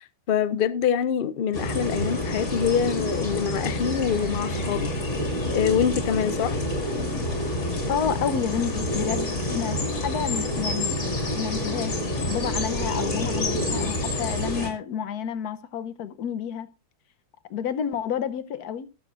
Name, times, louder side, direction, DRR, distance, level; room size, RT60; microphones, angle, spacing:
voice 1, 0.0-4.9 5.5-6.6, left 8 dB, 85° left, 0.4 m, -25 dB
sound 1, 1.5-14.7, left 1 dB, 45° left, 2.3 m, -28 dB
voice 2, 7.9-11.0 11.3-16.7 17.5-18.9, left 8 dB, 70° left, 1.2 m, -30 dB
19.0 x 6.9 x 2.5 m
omnidirectional pair, 1.8 m